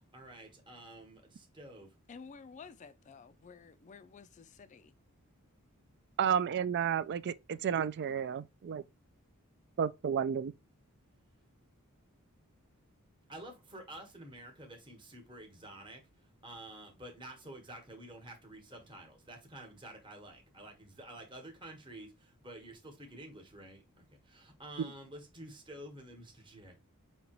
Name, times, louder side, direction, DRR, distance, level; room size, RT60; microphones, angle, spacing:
voice 1, 0.0-1.9 13.3-16.0 16.4-26.8, right 1 dB, 20° right, 1.2 m, -50 dB
voice 2, 2.1-4.9, left 5 dB, 35° left, 0.3 m, -52 dB
voice 3, 6.2-8.8 9.8-10.5, right 8 dB, 50° right, 0.3 m, -31 dB
5.4 x 2.9 x 2.9 m
head